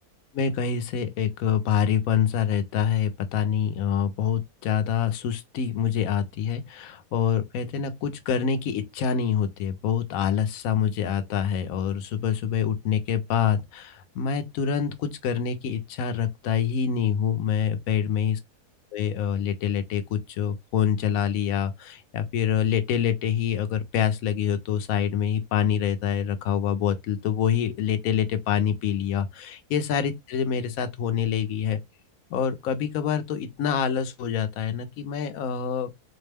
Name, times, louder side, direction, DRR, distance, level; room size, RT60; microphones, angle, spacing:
voice 1, 0.3-18.4 18.9-31.8 32.3-36.0, left 8 dB, 70° left, 1.0 m, -26 dB
4.3 x 2.1 x 3.3 m
omnidirectional pair, 1.6 m